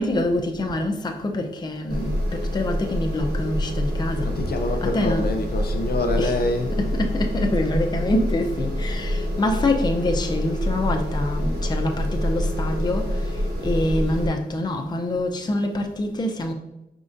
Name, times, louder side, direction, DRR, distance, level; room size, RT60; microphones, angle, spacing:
voice 1, 0.0-4.3 4.9-5.2 6.2-6.3 6.8-16.5, left 1 dB, 25° left, 0.5 m, -25 dB
sound 1, 1.9-14.3, equal, 75° right, 1.4 m, -26 dB
voice 2, 4.2-6.7, left 2 dB, 70° left, 0.6 m, -26 dB
5.2 x 3.7 x 2.5 m
wide cardioid pair, 90°, 17 cm